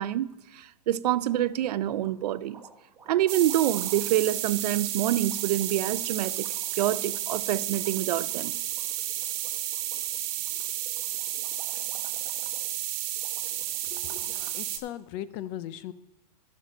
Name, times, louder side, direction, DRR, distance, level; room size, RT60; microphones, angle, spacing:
voice 1, 0.0-2.6 3.1-6.5 6.8-8.5, right 12 dB, 70° right, 0.5 m, -27 dB
sound 1, 1.0-1.6 1.9-14.7, right 5 dB, 15° right, 1.2 m, -54 dB
sound 2, 3.3-14.8, right 13 dB, 40° right, 1.0 m, -32 dB
voice 2, 13.9-15.9, left 12 dB, 30° left, 0.4 m, -38 dB
12.0 x 6.3 x 5.1 m
supercardioid pair, 150°, 21 cm